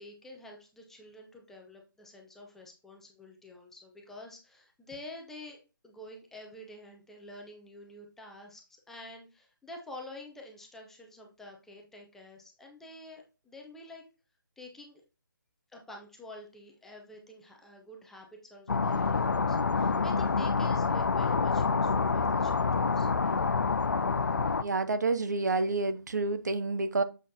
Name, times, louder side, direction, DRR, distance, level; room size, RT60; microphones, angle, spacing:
voice 1, 0.0-14.0 14.6-15.0 15.7-23.4, left 2 dB, 5° left, 1 dB, 0.6 m, -48 dB
sound 1, 18.7-24.6, left 4 dB, 55° left, 0.5 m, -27 dB
voice 2, 24.6-27.0, right 3 dB, 50° right, 12 dB, 0.6 m, -29 dB
7.2 x 6.1 x 2.7 m, 0.31 s
figure-of-eight pair, 145°, 12 cm